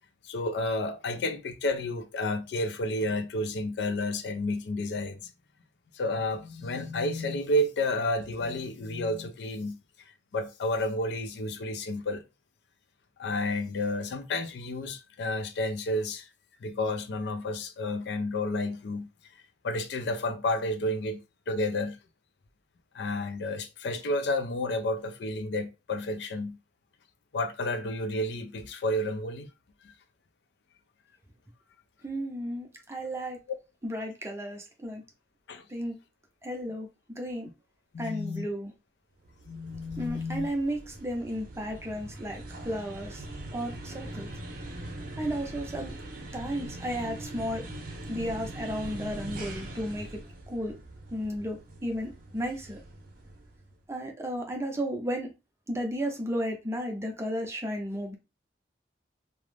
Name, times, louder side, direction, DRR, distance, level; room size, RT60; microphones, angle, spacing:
voice 1, 0.2-5.3 5.9-9.8 10.3-12.2 13.2-16.3 16.6-19.1 19.6-21.2 21.5-22.0 22.9-26.6 27.3-29.5 29.8-29.9 35.5-35.6 37.9-38.4 39.5-40.5, left 1 dB, 70° left, 0.4 m, -31 dB
voice 2, 32.0-33.4 33.8-35.0 35.7-36.0 36.4-37.5 38.0-38.7 40.0-43.2 43.5-44.3 45.2-46.0 46.3-47.6 48.1-50.2 50.5-50.7 51.1-52.8 53.9-55.3 55.7-58.1, equal, 15° right, 0.5 m, -33 dB
sound 1, 39.2-53.7, right 1 dB, 55° right, 0.7 m, -42 dB
2.4 x 2.0 x 3.1 m
head